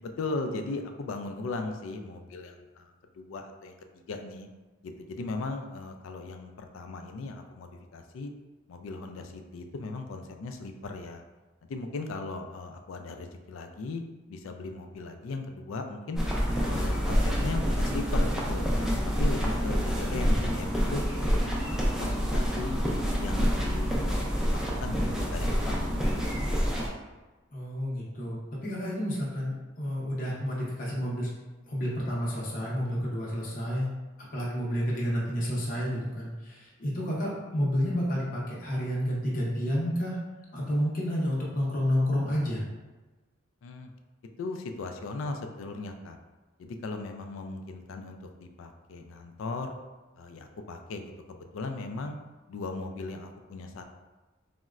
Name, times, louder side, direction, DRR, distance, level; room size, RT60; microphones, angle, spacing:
voice 1, 0.0-4.5 4.8-8.3 8.7-11.2 11.7-14.0 14.3-16.2 16.6-18.7 19.2-22.8 23.2-24.1 24.5-26.0 43.6-43.9 44.4-46.2 46.6-49.7 50.2-52.2 52.5-53.8, left 3 dB, 85° left, 5 dB, 0.3 m, -38 dB
sound 1, 16.1-26.9, equal, 5° right, 0.3 m, -27 dB
voice 2, 27.5-31.3 31.7-33.9 34.3-40.2 40.5-42.6, equal, 45° left, -5 dB, 0.6 m, -30 dB
4.0 x 2.1 x 2.3 m, 1.2 s
head